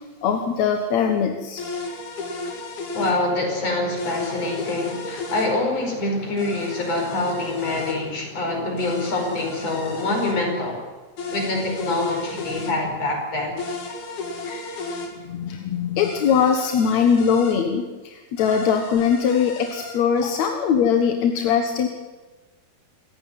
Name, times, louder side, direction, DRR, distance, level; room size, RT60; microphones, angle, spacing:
voice 1, 0.2-1.6 14.5-14.7 15.2-21.9, left 7 dB, 60° left, 4 dB, 2.3 m, -21 dB
sound 1, 1.6-3.2 4.0-5.5 6.4-8.0 8.8-10.4 11.2-12.8 13.6-15.1 16.0-17.6 18.4-20.0, left 3 dB, 75° left, 4.8 m, -34 dB
voice 2, 2.9-10.8 11.3-13.6, left 2 dB, 40° left, 2 dB, 6.0 m, -25 dB
27.5 x 15.5 x 9.5 m, 1.3 s
omnidirectional pair, 4.4 m